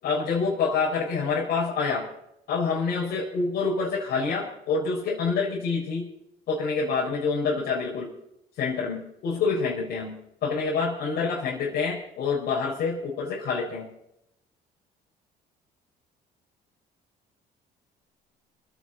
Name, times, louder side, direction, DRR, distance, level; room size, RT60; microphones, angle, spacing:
voice 1, 0.0-2.1 2.5-6.1 6.5-8.1 8.6-13.9, left 4 dB, 70° left, -5 dB, 4.8 m, -27 dB
27.0 x 9.7 x 4.1 m, 0.81 s
cardioid pair, 110°, 17 cm